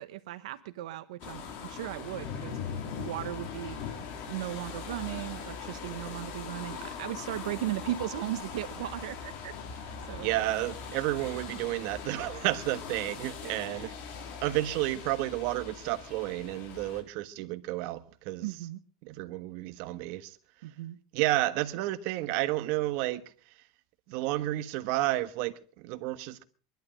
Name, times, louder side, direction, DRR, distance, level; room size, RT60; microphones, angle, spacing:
voice 1, 0.0-3.8 4.3-10.3 11.2-11.3 13.4-13.9 18.4-18.8 20.6-21.0, right 14 dB, 80° right, 1.0 m, -37 dB
sound 1, 1.2-17.0, left 6 dB, 45° left, 3.6 m, -41 dB
voice 2, 10.1-13.9 14.4-18.5 19.0-20.4 21.1-23.2 24.1-26.4, right 17 dB, 55° right, 1.2 m, -31 dB
23.0 x 11.5 x 5.1 m
supercardioid pair, 140°, 3 cm